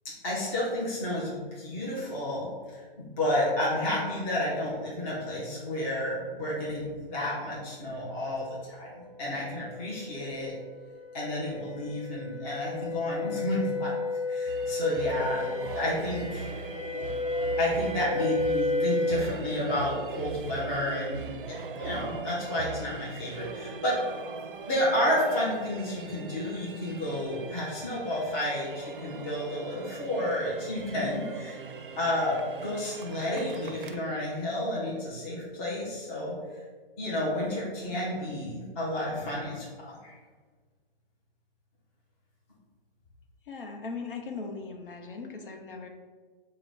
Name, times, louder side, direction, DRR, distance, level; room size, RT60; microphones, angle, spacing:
voice 1, 0.2-2.8 3.2-10.5 11.1-13.9 14.3-15.5 15.7-16.6 17.6-24.0 24.7-31.6 32.0-36.4 37.0-40.1, left 1 dB, 15° left, -6 dB, 0.5 m, -31 dB
sound 1, 9.4-19.3, left 2 dB, 5° right, 0.9 m, -32 dB
sound 2, 14.5-34.0, right 5 dB, 65° right, 0.5 m, -41 dB
voice 2, 43.5-45.9, left 4 dB, 65° left, 3 dB, 0.7 m, -39 dB
3.9 x 2.1 x 4.5 m, 1.4 s
hypercardioid pair, 160°, 29 cm